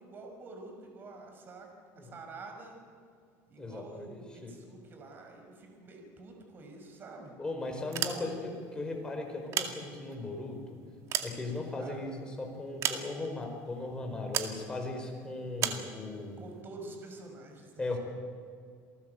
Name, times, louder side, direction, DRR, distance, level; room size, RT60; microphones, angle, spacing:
voice 1, 0.0-1.7 2.0-2.8 3.5-7.3 8.1-8.3 11.8-12.0 16.4-17.8, right 3 dB, 30° right, 3 dB, 5.6 m, -47 dB
voice 2, 3.6-4.1 4.4-4.5 7.4-8.4 8.7-10.6 11.2-16.4 17.8-18.0, left 2 dB, 15° left, 2 dB, 5.1 m, -37 dB
sound 1, 7.8-8.6 9.3-10.3 10.8-12.0 12.8-13.4 14.3-14.6 15.6-15.9, right 9 dB, 50° right, 2.2 m, -34 dB
28.5 x 18.5 x 8.1 m, 2.2 s
cardioid pair, 140°, 7 cm